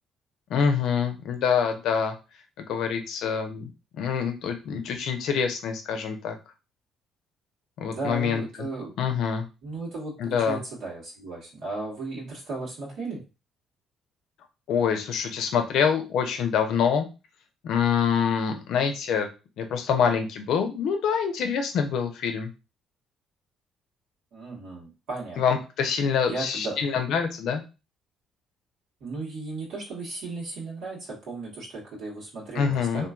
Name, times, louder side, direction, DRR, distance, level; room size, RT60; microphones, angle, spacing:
voice 1, 0.5-2.1 2.7-6.3 7.8-8.4 9.0-9.4 10.2-10.6 14.7-17.1 17.6-19.3 19.6-22.5 25.4-27.6 32.6-33.1, left 7 dB, 65° left, 6 dB, 0.5 m, -25 dB
voice 2, 7.8-8.9 9.6-13.2 24.3-25.4 26.2-26.8 29.0-33.1, right 3 dB, 70° right, -5 dB, 1.1 m, -35 dB
3.0 x 2.3 x 2.3 m, 0.29 s
hypercardioid pair, 55°, 0 cm